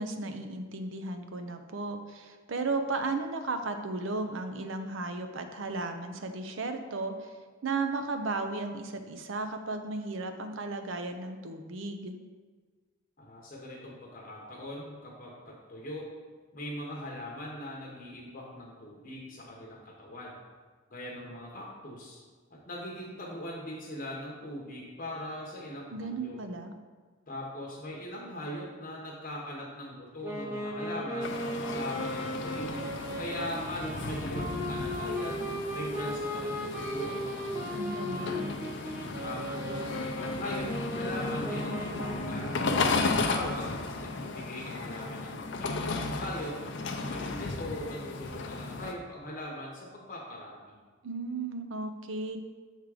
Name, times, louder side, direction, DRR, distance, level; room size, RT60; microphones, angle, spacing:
voice 1, 0.0-7.3 7.6-12.1 25.9-26.7 37.7-38.6 51.0-52.4, right 3 dB, 65° right, 7 dB, 0.6 m, -35 dB
voice 2, 13.2-16.1 16.5-20.4 20.9-22.2 22.5-26.4 27.3-31.4 31.7-32.8 33.1-35.4 35.7-38.4 39.2-42.5 42.9-43.7 44.0-46.6 46.9-50.8, left 1 dB, 40° left, -3 dB, 1.0 m, -40 dB
Wind instrument woodwind instrument, 30.2-42.7, equal, 10° right, 0.9 m, -36 dB
sound 1, 31.2-48.9, left 3 dB, 60° left, 0.5 m, -34 dB
7.4 x 3.6 x 4.8 m, 1.4 s
head